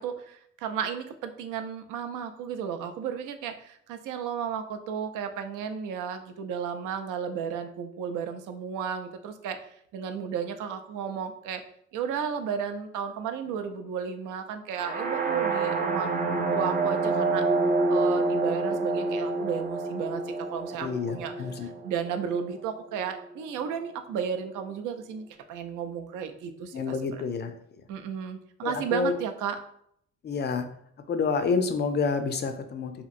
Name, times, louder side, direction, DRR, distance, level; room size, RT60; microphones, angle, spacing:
voice 1, 0.0-9.6 9.9-11.6 11.9-17.5 17.9-21.3 21.6-27.2 27.9-29.6, right 7 dB, 85° right, 7 dB, 0.5 m, -34 dB
sound 1, 14.7-22.6, right 3 dB, 30° right, 0.6 m, -27 dB
voice 2, 20.8-21.7 26.7-27.5 28.6-29.1 30.2-30.6 31.1-32.9, left 4 dB, 35° left, 8 dB, 0.4 m, -28 dB
2.9 x 2.6 x 2.4 m, 0.68 s
cardioid pair, 90°, 30 cm